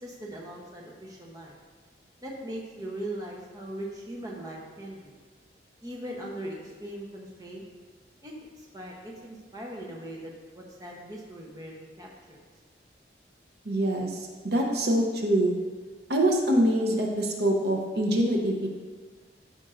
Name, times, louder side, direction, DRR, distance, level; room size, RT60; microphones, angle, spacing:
voice 1, 0.0-1.6 2.2-5.1 5.8-7.6 8.2-12.4, right 1 dB, 20° right, -2 dB, 0.9 m, -40 dB
voice 2, 13.6-15.5 16.1-18.7, right 1 dB, 60° right, 1 dB, 0.8 m, -25 dB
12.0 x 5.2 x 2.5 m, 1.5 s
head